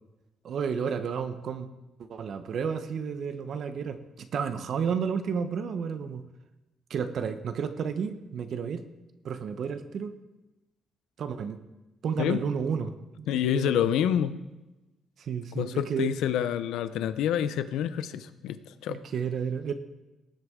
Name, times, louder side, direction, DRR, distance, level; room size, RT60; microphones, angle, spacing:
voice 1, 0.4-1.7 2.0-6.2 6.9-8.8 9.2-10.1 11.2-11.6 12.0-13.8 15.2-16.1 18.9-19.7, right 6 dB, 65° right, 9 dB, 0.8 m, -31 dB
voice 2, 13.3-14.3 15.6-19.0, left 10 dB, 85° left, 13 dB, 0.6 m, -27 dB
18.5 x 8.1 x 3.7 m, 1.0 s
cardioid pair, 90°, 0 cm